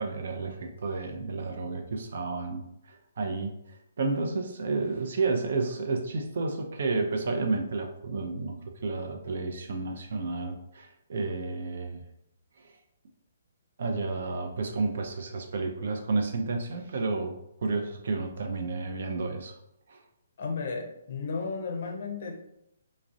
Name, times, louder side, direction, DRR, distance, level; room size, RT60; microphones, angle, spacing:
voice 1, 0.0-12.0 12.6-12.7 13.8-19.6 19.9-20.0, right 3 dB, 65° right, 3 dB, 0.4 m, -31 dB
voice 2, 20.4-22.4, left 4 dB, 55° left, 3 dB, 0.5 m, -34 dB
2.4 x 2.0 x 2.6 m, 0.79 s
hypercardioid pair, 150°, 0 cm